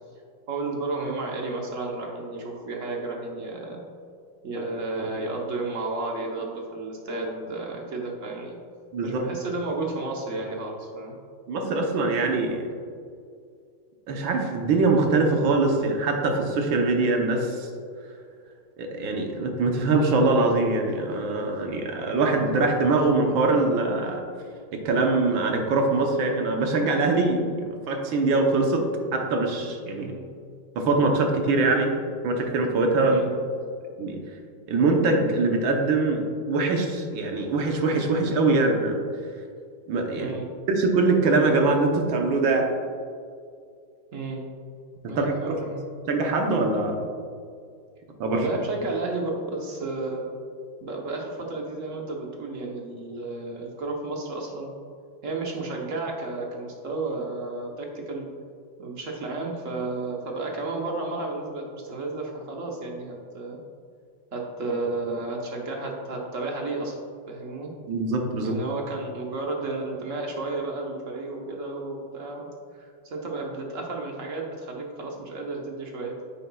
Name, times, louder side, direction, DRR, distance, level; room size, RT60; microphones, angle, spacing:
voice 1, 0.5-3.8 4.4-8.6 9.0-11.2 29.9-30.3 33.0-33.3 40.2-40.5 44.1-44.4 45.1-45.8 48.3-50.2 50.8-54.7 55.2-58.3 58.8-63.6 64.3-67.0 67.3-67.7 68.4-72.5 72.7-76.2, right 3 dB, 45° right, 0 dB, 1.1 m, -32 dB
voice 2, 11.5-12.6 14.1-17.7 18.8-24.2 24.7-27.6 27.9-28.8 29.1-30.1 30.7-31.9 32.2-33.2 34.0-34.2 34.7-39.0 39.9-40.3 40.7-42.7 45.2-45.6 46.1-47.0 48.2-48.5 67.9-68.6, right 3 dB, 70° right, 2 dB, 1.7 m, -23 dB
9.7 x 8.0 x 2.3 m, 2.3 s
omnidirectional pair, 2.2 m